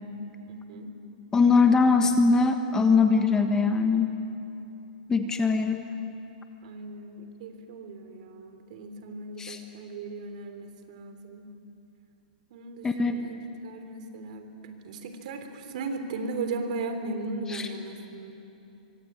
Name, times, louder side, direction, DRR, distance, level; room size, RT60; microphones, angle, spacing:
voice 1, 0.5-1.0 6.6-11.5 12.5-18.3, right 3 dB, 55° right, 7 dB, 3.4 m, -37 dB
voice 2, 1.3-4.1 5.1-5.8 9.4-9.6 12.8-13.1 17.5-17.6, left 4 dB, 10° left, 6 dB, 1.3 m, -21 dB
24.5 x 24.5 x 9.6 m, 2.8 s
hypercardioid pair, 155°, 5 cm